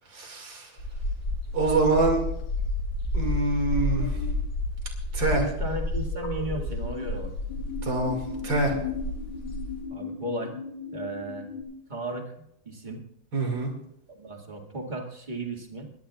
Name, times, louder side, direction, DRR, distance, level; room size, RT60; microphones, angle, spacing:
voice 1, 0.1-0.7 1.5-2.2 3.1-4.2 5.1-5.5 7.8-8.8 13.3-13.7, right 3 dB, 75° right, 2 dB, 3.1 m, -25 dB
sound 1, 0.8-9.8, left 1 dB, 90° left, 6.3 m, -31 dB
sound 2, 3.8-4.3 6.1-7.1 7.5-11.6, left 6 dB, 75° left, 4.5 m, -37 dB
voice 2, 5.4-7.3 9.9-10.6 10.9-11.5 11.9-13.0 14.1-15.9, right 2 dB, 25° right, 1 dB, 2.2 m, -35 dB
26.0 x 12.0 x 2.4 m, 0.78 s
omnidirectional pair, 2.1 m